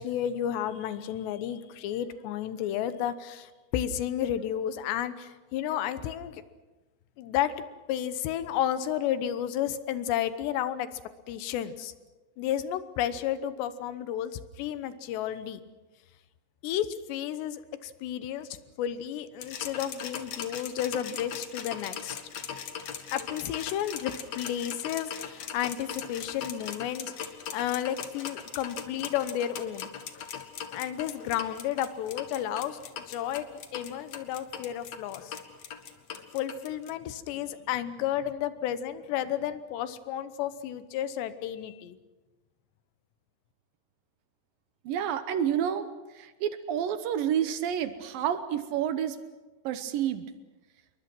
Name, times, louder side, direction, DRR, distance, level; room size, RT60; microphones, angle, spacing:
voice 1, 0.0-6.4 7.2-7.5 7.9-11.0 11.3-11.9 12.4-15.6 16.6-18.5 18.8-22.2 23.1-29.9 30.7-32.8 33.1-35.4 36.3-42.0, left 10 dB, 85° left, 12 dB, 3.2 m, -32 dB
sound 1, 19.4-36.9, left 8 dB, 55° left, 2.0 m, -39 dB
voice 2, 44.9-45.9 46.2-49.2 49.6-50.2, right 9 dB, 70° right, 11 dB, 2.4 m, -29 dB
28.0 x 22.5 x 6.2 m, 1.2 s
omnidirectional pair, 4.9 m